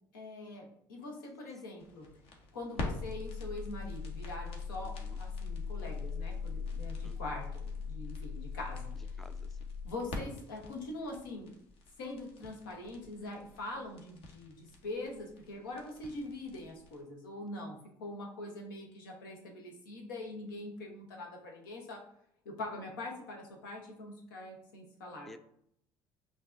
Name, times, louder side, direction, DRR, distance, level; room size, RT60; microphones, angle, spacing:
voice 1, 0.1-2.1 2.5-8.9 9.8-11.5 12.0-22.0 22.4-25.3, left 2 dB, 90° left, 1 dB, 0.9 m, -43 dB
sound 1, 1.8-17.0, left 4 dB, 60° left, 0.9 m, -41 dB
voice 2, 7.0-7.4 9.2-9.7 25.3-25.4, left 1 dB, ahead, 10 dB, 0.3 m, -54 dB
5.4 x 2.7 x 2.5 m, 0.71 s
hypercardioid pair, 65°, 11 cm